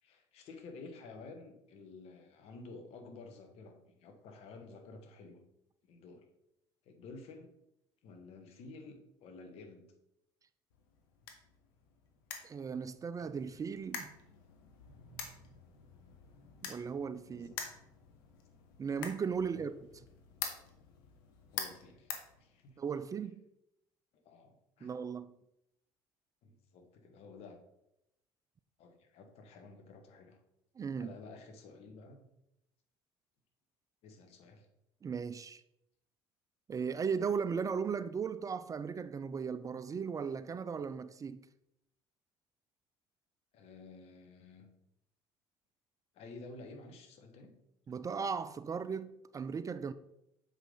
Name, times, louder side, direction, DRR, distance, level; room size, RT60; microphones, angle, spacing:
voice 1, 0.0-5.4 5.8-6.3 6.8-7.5 8.0-9.9 17.3-17.6 19.5-19.7 21.5-22.8 24.1-24.9 26.4-27.6 28.8-30.4 31.0-32.3 34.0-34.7 43.5-44.7 46.1-47.6, left 3 dB, 65° left, 1.5 m, -52 dB
sound 1, 10.7-23.0, left 7 dB, 85° left, 1.1 m, -47 dB
voice 2, 12.4-14.1 16.6-17.5 18.8-19.7 22.8-23.4 24.8-25.3 30.8-31.1 35.0-35.6 36.7-41.5 47.9-49.9, right 6 dB, 30° right, 0.4 m, -37 dB
7.2 x 5.2 x 3.9 m
hypercardioid pair, 70°, 11 cm